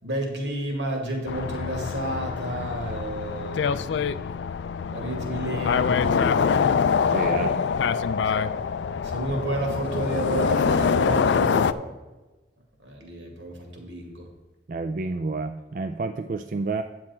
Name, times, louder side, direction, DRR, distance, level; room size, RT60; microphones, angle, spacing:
voice 1, 0.0-4.0 4.9-6.6 8.3-8.5 9.0-11.9 12.8-14.3, right 1 dB, 80° right, 1 dB, 2.3 m, -31 dB
sound 1, 1.3-11.7, left 6 dB, 75° left, 0.4 m, -25 dB
voice 2, 7.1-7.5 14.7-16.8, right 3 dB, 45° right, 7 dB, 0.3 m, -29 dB
9.5 x 7.7 x 4.3 m, 1.2 s
head